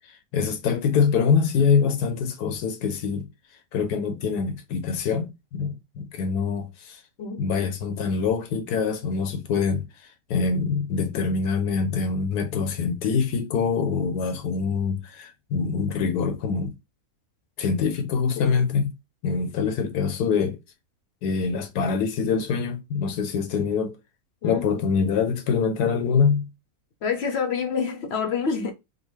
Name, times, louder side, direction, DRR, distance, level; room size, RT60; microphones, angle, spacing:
voice 1, 0.1-3.3 3.7-7.0 7.4-9.9 10.3-16.7 17.6-18.9 19.2-20.6 21.2-24.0 24.4-26.5, left 5 dB, 80° left, 1.2 m, -24 dB
voice 2, 7.2-7.5 18.4-18.6 24.4-24.7 27.0-28.7, left 6 dB, 55° left, 0.7 m, -27 dB
3.7 x 2.3 x 3.1 m
omnidirectional pair, 1.7 m